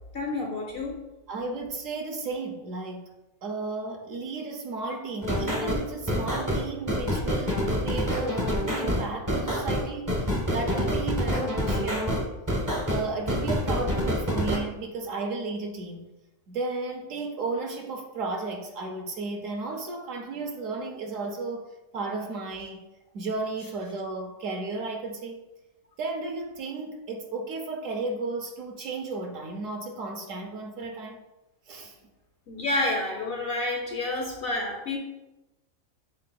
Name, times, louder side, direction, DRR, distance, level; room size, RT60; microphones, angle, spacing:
voice 1, 0.1-1.0 32.5-35.0, left 2 dB, 65° left, 1 dB, 0.5 m, -29 dB
voice 2, 1.3-3.1 3.4-12.3 12.9-16.1 16.5-22.9 23.1-25.4 26.0-31.2 31.7-32.0, right 3 dB, 70° right, 2 dB, 0.9 m, -34 dB
sound 1, 5.2-14.6, equal, 25° right, 0.4 m, -27 dB
6.5 x 3.7 x 2.2 m, 1.0 s
omnidirectional pair, 1.5 m